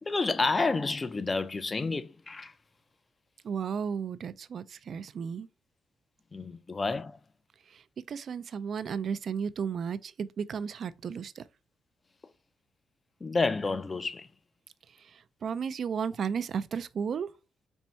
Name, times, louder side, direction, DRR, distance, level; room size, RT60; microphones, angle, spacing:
voice 1, 0.0-2.5 6.3-7.2 13.2-14.3, left 3 dB, 25° left, 0.4 m, -30 dB
voice 2, 3.4-5.5 7.7-11.5 15.0-17.3, right 6 dB, 55° right, 0.3 m, -34 dB
4.4 x 2.6 x 4.3 m
cardioid pair, 90°, 0 cm